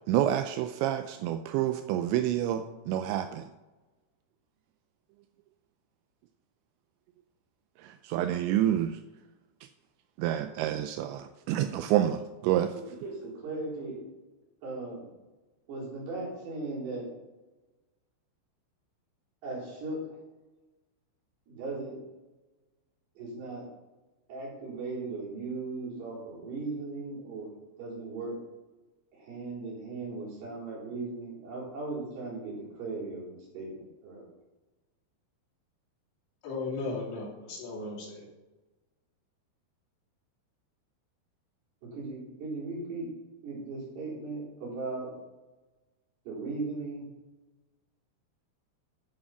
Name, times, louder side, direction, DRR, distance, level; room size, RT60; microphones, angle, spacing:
voice 1, 0.1-3.4 8.0-9.0 10.2-12.7, right 11 dB, 90° right, 8 dB, 2.5 m, -28 dB
voice 2, 12.7-14.0 14.6-15.1 15.7-17.1 19.4-20.2 21.5-22.0 23.2-23.7 24.3-27.5 27.8-28.4 29.1-34.3 41.8-43.1 43.4-45.2 46.3-47.1, right 3 dB, 55° right, -6 dB, 6.0 m, -37 dB
voice 3, 36.4-38.3, left 3 dB, 60° left, -4 dB, 4.3 m, -36 dB
11.0 x 6.4 x 5.9 m, 1.1 s
omnidirectional pair, 5.7 m